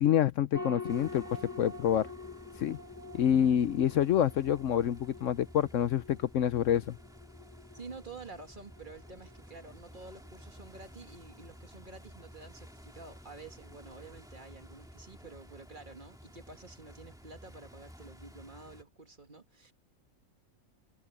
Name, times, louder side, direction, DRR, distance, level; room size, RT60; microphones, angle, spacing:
voice 1, 0.0-1.2 1.6-2.1 2.6-2.8 3.1-6.8, left 10 dB, 65° left, 1.0 m, -27 dB
sound 1, 0.5-15.3, left 3 dB, 10° left, 1.6 m, -48 dB
sound 2, 0.9-18.8, equal, 5° right, 2.3 m, -53 dB
voice 2, 7.7-19.7, right 3 dB, 35° right, 2.0 m, -49 dB
omnidirectional pair, 1.5 m